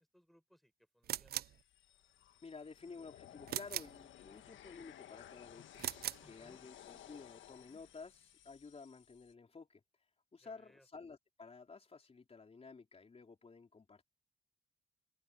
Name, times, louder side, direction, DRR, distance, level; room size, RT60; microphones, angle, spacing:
voice 1, 0.0-1.4 6.2-6.7 10.4-10.9, equal, ahead, 7.3 m, -68 dB
sound 1, 1.0-1.6 3.5-4.0 5.7-6.3, right 12 dB, 50° right, 0.4 m, -40 dB
sound 2, 1.4-9.3, left 11 dB, 75° left, 1.6 m, -58 dB
voice 2, 2.4-5.8 6.2-9.8 10.3-14.0, left 4 dB, 30° left, 4.3 m, -53 dB
cardioid pair, 90°, 20 cm